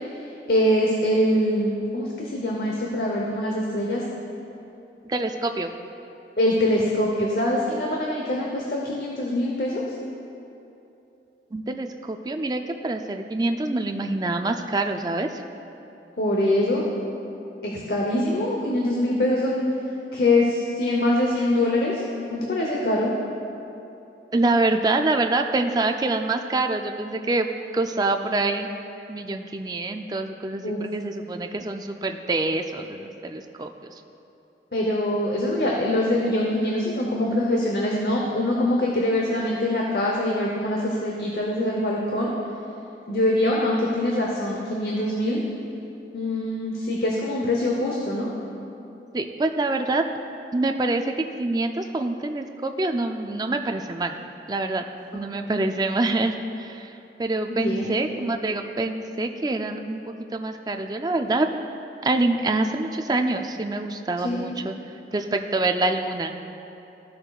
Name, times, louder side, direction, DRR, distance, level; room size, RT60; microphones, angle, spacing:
voice 1, 0.5-4.0 6.4-9.8 16.2-16.8 17.6-19.6 20.1-22.0 22.3-23.1 30.6-30.8 34.7-42.3 43.1-45.4 46.1-48.3 57.5-58.0 64.2-64.4, left 1 dB, 60° left, -2 dB, 0.8 m, -23 dB
voice 2, 5.0-5.7 11.5-15.4 24.3-27.5 27.7-28.7 29.1-33.7 49.1-50.0 50.5-51.1 51.4-54.1 54.5-54.8 55.1-56.9 57.2-61.5 62.0-64.7 65.1-66.3, right 2 dB, 20° right, 5 dB, 0.3 m, -26 dB
14.5 x 6.5 x 2.4 m, 2.9 s
head